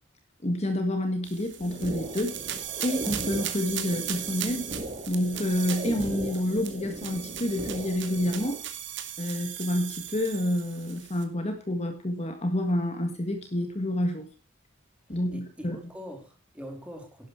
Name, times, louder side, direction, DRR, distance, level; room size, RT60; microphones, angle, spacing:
voice 1, 0.4-2.4 2.8-4.7 5.1-8.6 9.2-14.3 15.1-15.8, left 1 dB, 35° left, 1.6 m, -28 dB
sound 1, 1.2-11.2, right 11 dB, 65° right, 2.1 m, -37 dB
sound 2, 1.6-8.6, right 1 dB, 40° right, 3.7 m, -38 dB
voice 2, 15.1-17.3, equal, 5° right, 3.6 m, -43 dB
11.5 x 11.5 x 4.6 m
head